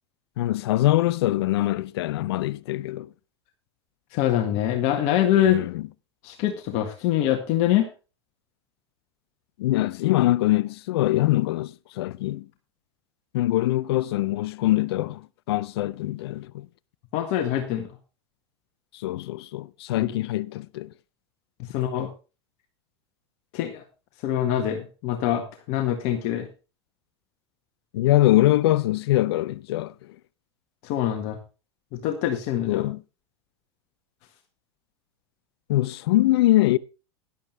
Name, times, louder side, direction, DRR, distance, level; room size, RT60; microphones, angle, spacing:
voice 1, 0.4-3.1 5.5-5.9 9.6-12.5 13.3-16.7 18.9-20.9 27.9-30.2 32.7-33.0 35.7-36.8, left 16 dB, 75° left, 0.6 m, -23 dB
voice 2, 4.1-5.7 6.2-7.9 17.1-17.9 21.7-22.1 23.5-23.8 24.2-26.5 30.8-31.4 31.9-32.8, left 11 dB, 55° left, 1.7 m, -24 dB
13.0 x 11.0 x 3.3 m
hypercardioid pair, 95°, 14 cm